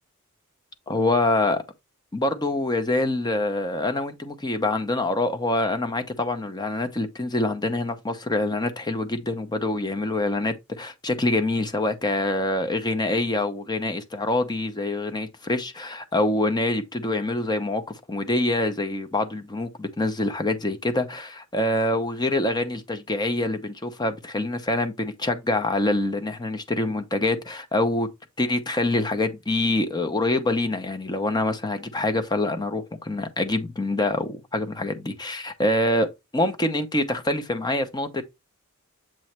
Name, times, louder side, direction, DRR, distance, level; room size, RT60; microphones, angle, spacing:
voice 1, 0.9-1.6 2.1-17.8 18.1-28.1 28.4-36.1 36.3-38.2, left 2 dB, 20° left, 0.7 m, -25 dB
7.6 x 3.1 x 4.4 m
head